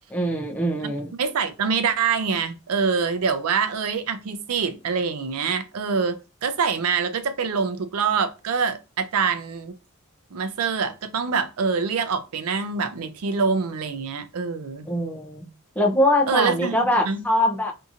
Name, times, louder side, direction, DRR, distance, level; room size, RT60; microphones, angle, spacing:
voice 1, 0.1-1.1 14.9-15.4 15.8-17.7, left 1 dB, 5° left, 0.5 m, -22 dB
voice 2, 1.2-9.7 10.3-14.9 16.3-16.8 17.1-17.2, right 5 dB, 85° right, 0.5 m, -25 dB
2.7 x 2.7 x 2.4 m
head